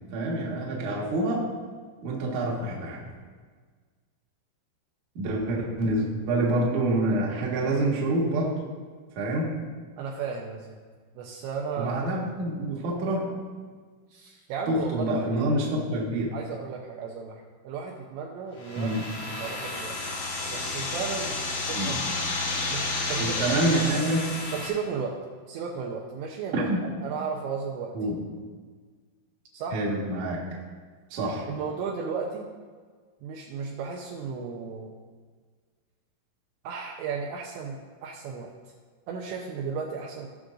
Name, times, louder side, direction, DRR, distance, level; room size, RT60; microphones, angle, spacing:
voice 1, 0.1-1.5 2.0-3.0 5.2-8.6 9.2-9.6 11.8-13.3 14.7-16.3 18.7-19.1 21.7-22.0 23.2-24.2 26.5-26.8 27.9-28.2 29.7-30.4 31.1-31.5, right 1 dB, 65° right, -3 dB, 1.9 m, -27 dB
voice 2, 10.0-10.8 11.2-12.2 14.1-15.4 15.7-15.8 16.3-20.0 20.5-21.4 21.7-22.0 22.7-23.9 24.5-25.2 25.5-27.9 29.5-29.8 31.5-32.5 33.2-34.9 36.6-38.5 39.1-40.3, right 5 dB, 85° right, 0 dB, 2.7 m, -34 dB
sound 1, 18.6-24.7, left 3 dB, 75° left, 1.7 m, -31 dB
18.0 x 6.2 x 2.6 m, 1.5 s
omnidirectional pair, 5.8 m